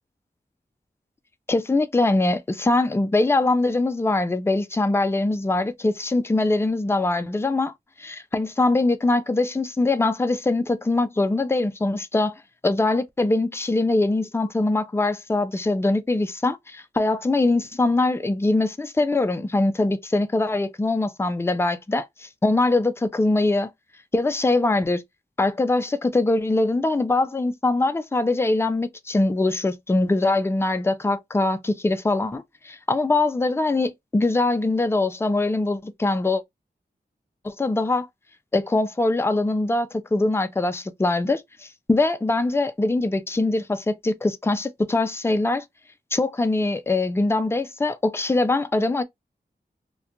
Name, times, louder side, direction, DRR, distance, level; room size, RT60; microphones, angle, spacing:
voice 1, 1.5-23.7 24.1-25.0 25.4-36.4 37.4-38.1 38.5-45.6 46.1-49.0, left 2 dB, 15° left, 0.4 m, -22 dB
2.4 x 2.2 x 2.8 m
wide cardioid pair, 55°, 18 cm